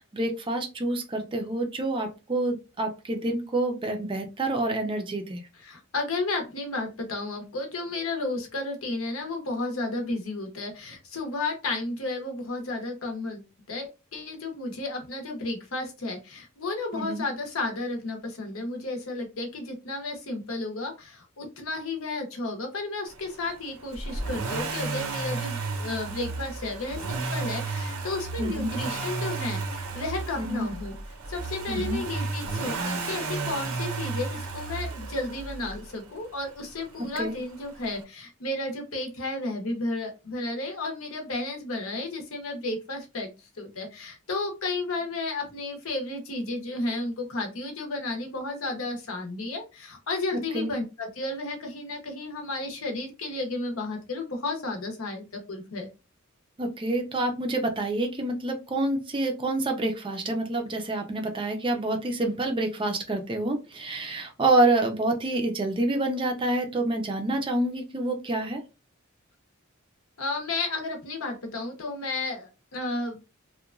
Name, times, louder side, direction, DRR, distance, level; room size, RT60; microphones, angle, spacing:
voice 1, 0.1-5.4 16.9-17.3 28.4-28.7 30.4-30.7 31.7-32.0 37.2-37.4 50.5-50.7 56.6-68.6, right 2 dB, 25° right, 5 dB, 0.4 m, -27 dB
voice 2, 5.6-30.9 31.3-43.3 43.6-55.9 70.2-73.2, left 2 dB, 70° left, 3 dB, 0.8 m, -33 dB
Accelerating revving vroom, 23.9-35.9 37.2-37.3, right 3 dB, 90° right, 0.6 m, -33 dB
2.8 x 2.2 x 2.4 m, 0.28 s
head